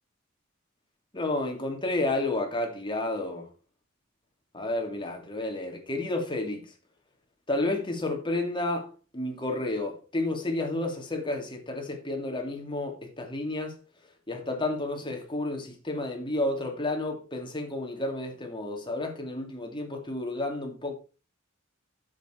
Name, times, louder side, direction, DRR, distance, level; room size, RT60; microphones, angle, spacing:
voice 1, 1.1-3.5 4.5-6.7 7.5-13.8 14.3-20.9, left 2 dB, 25° left, 3.1 m, -31 dB
10.5 x 7.9 x 4.7 m
head